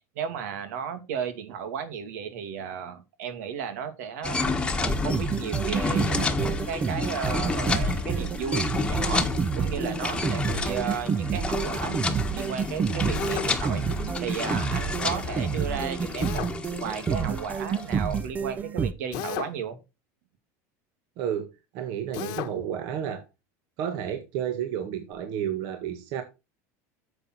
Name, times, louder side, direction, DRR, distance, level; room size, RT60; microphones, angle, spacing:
voice 1, 0.1-9.3 9.5-12.0 12.3-16.5 16.8-19.8, right 7 dB, 85° right, 2.4 m, -34 dB
sound 1, 4.2-18.2, left 3 dB, 10° left, 1.3 m, -30 dB
sound 2, 4.9-18.9, right 6 dB, 20° right, 0.6 m, -29 dB
Drill, 13.1-13.5 16.2-16.5 19.1-19.6 22.1-22.5, left 14 dB, 60° left, 1.2 m, -34 dB
voice 2, 21.2-21.5 21.7-23.2 23.8-26.2, right 9 dB, 55° right, 1.7 m, -31 dB
9.0 x 7.2 x 4.5 m
supercardioid pair, 150°, 8 cm